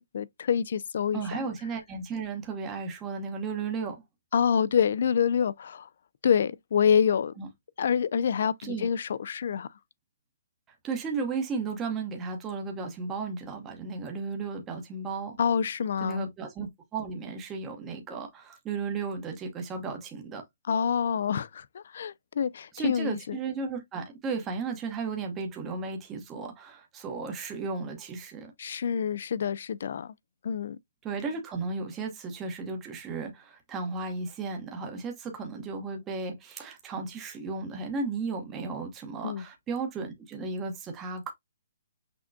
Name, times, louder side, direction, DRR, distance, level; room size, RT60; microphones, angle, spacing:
voice 1, 0.0-1.4 4.3-5.9 6.2-7.3 7.8-9.7 15.4-16.3 20.7-23.4 28.6-30.1 30.4-30.8 39.2-39.5, left 7 dB, 55° left, 0.3 m, -27 dB
voice 2, 1.1-4.0 7.4-7.5 8.6-8.9 10.8-15.4 16.0-20.4 22.7-28.5 31.0-41.3, right 4 dB, 15° right, 0.8 m, -34 dB
6.0 x 2.2 x 2.5 m
hypercardioid pair, 165°, 0 cm